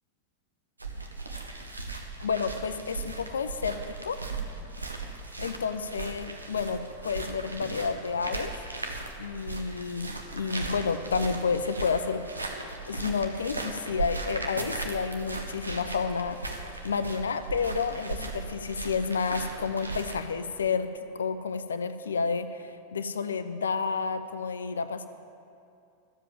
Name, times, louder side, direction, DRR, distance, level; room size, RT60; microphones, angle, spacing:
sound 1, 0.8-20.2, right 3 dB, 80° right, 1.1 m, -37 dB
voice 1, 2.2-4.2 5.4-8.5 9.2-12.2 12.9-25.1, left 5 dB, 70° left, 11 dB, 0.5 m, -30 dB
13.0 x 7.5 x 7.6 m, 2.5 s
figure-of-eight pair, 90°, 0 cm